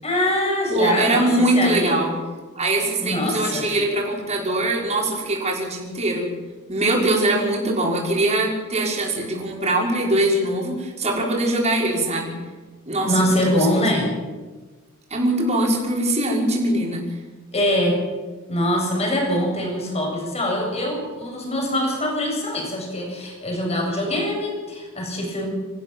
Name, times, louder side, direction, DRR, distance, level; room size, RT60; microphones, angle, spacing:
voice 1, 0.0-2.0 3.0-3.7 13.0-14.1 17.5-18.1 18.5-25.5, left 1 dB, 30° left, 0 dB, 7.6 m, -23 dB
voice 2, 0.7-2.1 2.5-6.3 6.7-12.3 12.9-14.0 15.1-17.2, right 1 dB, 30° right, -2 dB, 5.8 m, -22 dB
27.0 x 15.0 x 7.5 m, 1.3 s
head